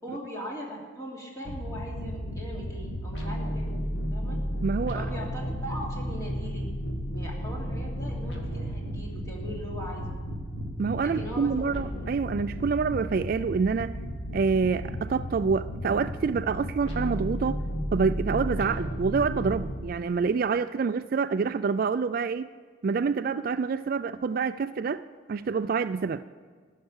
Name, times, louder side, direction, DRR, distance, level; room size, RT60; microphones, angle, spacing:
voice 1, 0.0-4.4 4.9-6.7 7.0-10.1 11.0-11.8, equal, 15° left, -3 dB, 2.9 m, -40 dB
sound 1, 1.4-19.8, equal, 65° left, 1.9 m, -33 dB
voice 2, 4.6-5.1 10.8-14.0 14.3-17.6 17.9-22.5 22.8-25.0 25.3-26.2, right 5 dB, 50° right, 13 dB, 0.3 m, -27 dB
15.0 x 6.6 x 9.9 m, 1.5 s
head